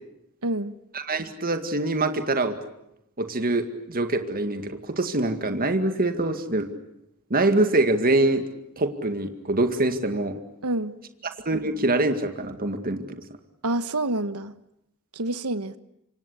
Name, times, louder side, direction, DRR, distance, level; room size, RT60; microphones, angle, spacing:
voice 1, 0.4-0.8 10.6-11.0 13.6-14.5 15.1-15.8, right 2 dB, 80° right, 13 dB, 1.4 m, -27 dB
voice 2, 0.9-2.6 3.2-6.7 7.3-8.4 8.8-10.4 11.5-13.1, right 2 dB, 40° right, 7 dB, 2.1 m, -24 dB
27.0 x 25.5 x 8.5 m, 0.80 s
head